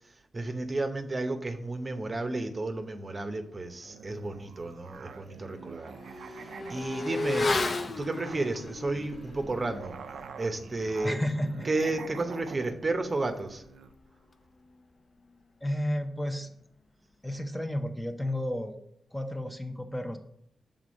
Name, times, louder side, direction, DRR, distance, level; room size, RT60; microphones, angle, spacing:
voice 1, 0.3-7.5 8.0-10.0 10.4-11.2 11.6-13.6, right 2 dB, 35° right, 6 dB, 0.7 m, -32 dB
Musical instrument, 3.8-14.0, right 6 dB, 85° right, 0.4 m, -46 dB
Motorcycle / Accelerating revving vroom, 4.3-4.4 4.8-14.8 15.1-15.2, left 3 dB, 50° left, 0.6 m, -36 dB
voice 2, 11.0-11.7 15.6-16.5 17.2-18.8 19.1-20.2, left 1 dB, 10° left, 5 dB, 0.8 m, -32 dB
6.1 x 3.8 x 5.1 m, 0.69 s
cardioid pair, 70°, 0 cm